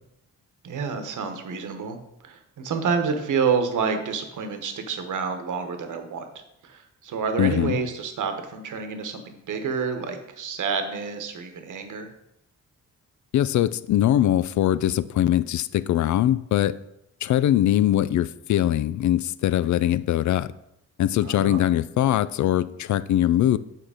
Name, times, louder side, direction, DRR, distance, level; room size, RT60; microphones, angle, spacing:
voice 1, 0.6-2.0 2.2-6.3 6.6-12.1 21.2-21.6, right 5 dB, 70° right, 6 dB, 1.1 m, -28 dB
voice 2, 7.4-7.8 13.3-16.8 17.2-20.5 21.0-23.6, left 12 dB, 65° left, 17 dB, 0.4 m, -22 dB
7.7 x 4.5 x 4.9 m, 0.81 s
cardioid pair, 75°, 32 cm